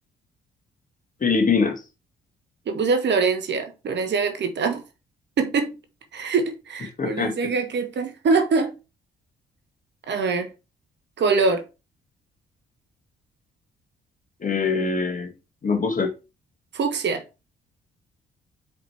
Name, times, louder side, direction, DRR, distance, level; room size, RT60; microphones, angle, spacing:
voice 1, 1.2-1.8 7.0-7.3 14.4-15.3 15.6-16.1, left 4 dB, 40° left, 1.9 m, -23 dB
voice 2, 2.7-4.8 5.4-5.8 6.1-8.7 10.1-10.5 11.2-11.6 16.7-17.2, right 4 dB, 60° right, 1.4 m, -23 dB
5.1 x 5.0 x 4.6 m
hypercardioid pair, 50°, 21 cm